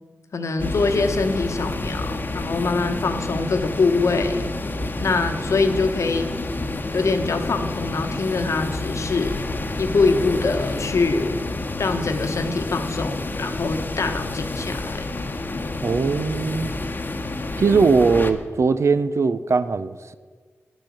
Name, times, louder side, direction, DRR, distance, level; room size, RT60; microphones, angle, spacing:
voice 1, 0.3-4.5 5.0-6.3 6.9-9.4 9.8-11.4 11.8-15.1, left 3 dB, 75° left, 1.0 m, -24 dB
sound 1, 0.6-18.3, left 2 dB, 40° left, 0.9 m, -29 dB
voice 2, 15.8-16.7 17.6-20.1, right 4 dB, 70° right, 0.5 m, -20 dB
10.0 x 6.2 x 8.4 m
wide cardioid pair, 65°, 5 cm